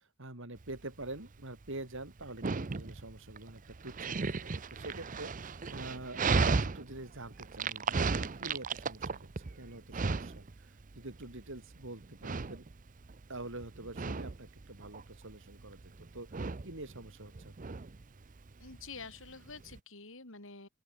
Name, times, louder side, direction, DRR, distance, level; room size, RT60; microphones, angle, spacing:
voice 1, 0.0-12.6 13.3-17.8, right 2 dB, 60° right, 3.9 m, -46 dB
Dog, 0.6-19.8, right 4 dB, 35° right, 0.6 m, -36 dB
voice 2, 18.6-20.7, left 4 dB, 60° left, 4.2 m, -48 dB
open air
head